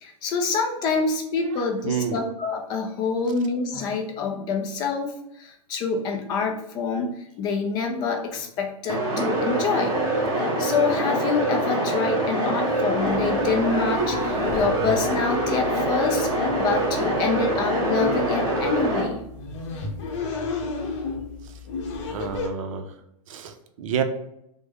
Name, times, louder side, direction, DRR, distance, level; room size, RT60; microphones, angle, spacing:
voice 1, 0.0-10.0 10.4-19.2, left 4 dB, 25° left, 2 dB, 0.3 m, -26 dB
voice 2, 1.8-2.2 21.4-21.5 22.1-22.9 23.3-24.0, right 7 dB, 65° right, 7 dB, 0.5 m, -29 dB
sound 1, 8.9-19.0, right 1 dB, 20° right, 0.8 m, -24 dB
sound 2, 13.0-22.5, left 4 dB, 55° left, 0.7 m, -34 dB
3.3 x 2.1 x 3.4 m, 0.81 s
hypercardioid pair, 150°, 18 cm